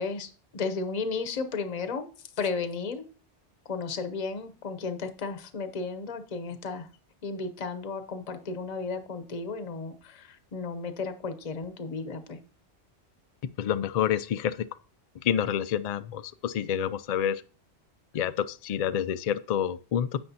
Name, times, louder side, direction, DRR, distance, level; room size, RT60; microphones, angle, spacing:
voice 1, 0.0-3.1 3.6-6.9 7.2-12.4, left 4 dB, 40° left, 0.8 m, -34 dB
voice 2, 13.6-14.6 15.2-17.4 18.1-20.2, left 9 dB, 65° left, 0.4 m, -28 dB
9.9 x 7.5 x 2.8 m
omnidirectional pair, 1.2 m